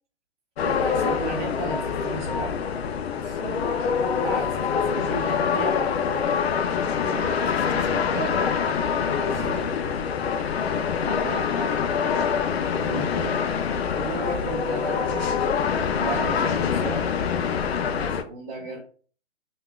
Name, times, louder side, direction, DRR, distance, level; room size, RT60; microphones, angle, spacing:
sound 1, 0.6-18.2, left 6 dB, 60° left, 0.5 m, -25 dB
voice 1, 0.6-2.6 4.2-6.0 7.0-7.1 11.0-11.9 12.5-15.3 15.9-17.1 17.9-18.8, right 4 dB, 30° right, -4 dB, 0.6 m, -35 dB
voice 2, 3.2-3.7 7.0-9.9, right 5 dB, 70° right, 5 dB, 0.8 m, -37 dB
3.3 x 2.4 x 2.2 m, 0.42 s
figure-of-eight pair, 135°, 36 cm